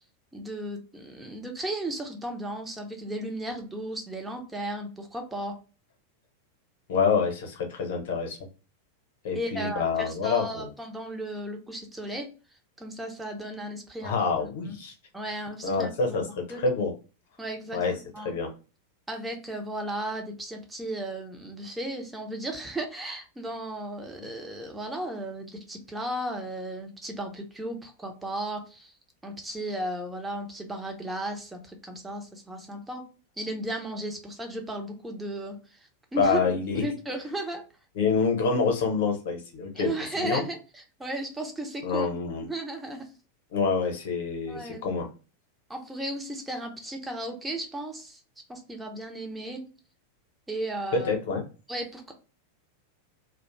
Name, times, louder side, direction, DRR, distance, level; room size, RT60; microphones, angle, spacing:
voice 1, 0.3-5.6 9.3-12.3 12.8-14.8 15.1-16.2 16.5-16.6 17.4-18.3 19.1-28.9 29.2-33.1 33.4-35.8 36.1-37.6 39.7-42.1 42.4-43.1 44.5-44.9 45.7-48.2 48.5-49.7 50.5-51.2 51.7-52.1, right 1 dB, 10° right, 3 dB, 0.6 m, -35 dB
voice 2, 6.9-8.4 9.2-10.7 14.0-14.9 15.6-16.9 17.7-17.9 18.2-18.5 24.2-24.3 36.2-36.8 37.9-40.4 41.8-42.5 43.5-45.1 50.9-51.4, left 5 dB, 55° left, 3 dB, 0.8 m, -27 dB
2.4 x 2.1 x 3.0 m, 0.33 s
figure-of-eight pair, 90°, 0 cm